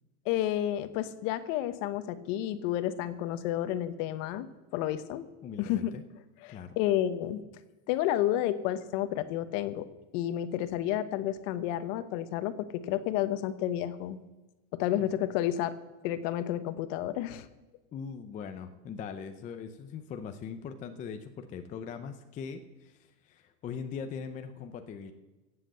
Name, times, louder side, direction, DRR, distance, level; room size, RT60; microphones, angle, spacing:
voice 1, 0.2-5.3 5.6-6.0 6.4-7.4 7.9-9.9 10.1-14.2 14.7-15.7 16.0-17.5, left 12 dB, 50° left, 13 dB, 1.1 m, -31 dB
voice 2, 5.4-6.0 6.5-6.8 15.0-15.1 17.9-23.0 23.2-25.1, left 6 dB, 15° left, 7 dB, 0.5 m, -41 dB
16.0 x 7.8 x 7.6 m, 1.1 s
supercardioid pair, 150°, 48 cm